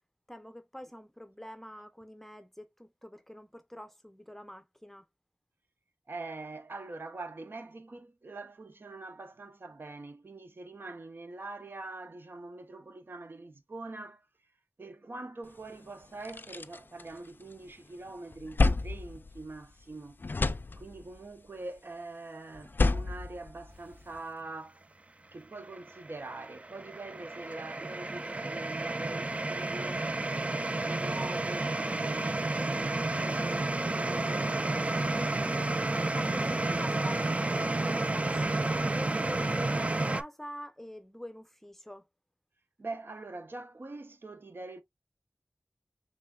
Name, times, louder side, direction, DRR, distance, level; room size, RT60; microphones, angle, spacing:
voice 1, 0.3-5.0 35.8-42.1, equal, 5° left, 0.7 m, -45 dB
voice 2, 6.1-14.3 14.8-20.2 20.8-24.8 25.3-30.1 30.4-35.3 42.8-44.8, right 2 dB, 65° right, 0.7 m, -44 dB
sound 1, 15.6-15.7 16.0-17.7 18.1-19.9 20.2-21.3 22.5-24.2, left 3 dB, 55° left, 0.3 m, -31 dB
sound 2, 25.5-40.2, right 2 dB, 35° right, 0.4 m, -31 dB
5.6 x 3.2 x 2.3 m
wide cardioid pair, 60°, 4 cm